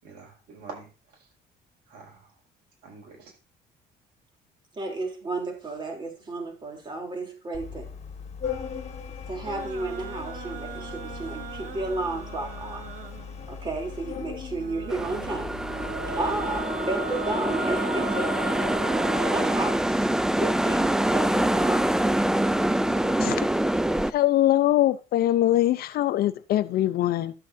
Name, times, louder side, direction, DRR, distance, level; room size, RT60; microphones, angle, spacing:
voice 1, 0.0-1.3 1.9-2.4 2.8-3.3, right 4 dB, 75° right, 6.3 m, -46 dB
voice 2, 4.7-7.9 9.3-12.9 13.5-15.6 16.2-18.3 19.3-20.1 20.4-22.0, right 2 dB, 30° right, 3.4 m, -32 dB
Organ, 7.5-16.6, left 6 dB, 40° left, 1.8 m, -39 dB
sound 1, 9.4-13.5 14.6-20.4, right 3 dB, 50° right, 1.2 m, -37 dB
sound 2, 14.9-24.1, right 1 dB, 5° right, 0.4 m, -25 dB
voice 3, 24.1-27.3, left 13 dB, 65° left, 0.7 m, -22 dB
12.5 x 7.9 x 2.7 m
cardioid pair, 110°, 17 cm